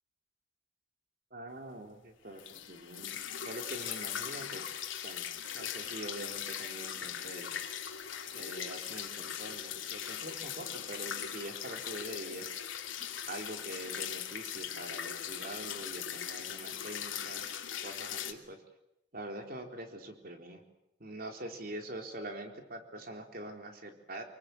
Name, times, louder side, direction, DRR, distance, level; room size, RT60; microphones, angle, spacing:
voice 1, 1.3-3.2 3.4-4.7 5.0-5.3 5.5-7.5 8.3-12.6 13.3-18.6 19.1-20.6 21.0-24.2, right 1 dB, 50° right, 4 dB, 4.0 m, -44 dB
sound 1, 2.4-18.3, left 9 dB, 85° left, 2.9 m, -40 dB
26.0 x 23.0 x 8.0 m, 0.80 s
head